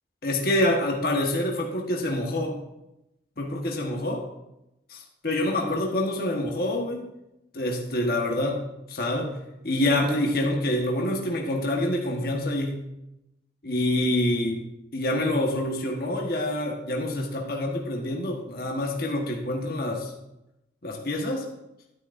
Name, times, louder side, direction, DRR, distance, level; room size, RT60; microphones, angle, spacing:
voice 1, 0.2-2.6 3.4-4.2 4.9-7.0 7.5-8.6 8.9-9.3 9.6-12.8 13.6-14.6 14.9-20.1 20.8-21.5, left 1 dB, 55° left, 0 dB, 1.3 m, -26 dB
11.0 x 9.8 x 2.6 m, 0.90 s
head